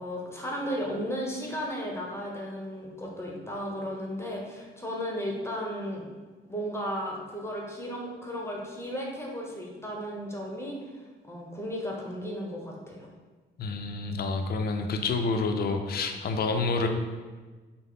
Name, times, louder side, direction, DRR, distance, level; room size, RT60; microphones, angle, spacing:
voice 1, 0.0-6.1 6.5-13.1, equal, 15° left, -2 dB, 0.9 m, -35 dB
voice 2, 13.6-16.9, left 3 dB, 50° left, 5 dB, 0.5 m, -28 dB
5.6 x 2.1 x 3.7 m, 1.4 s
cardioid pair, 90°, 20 cm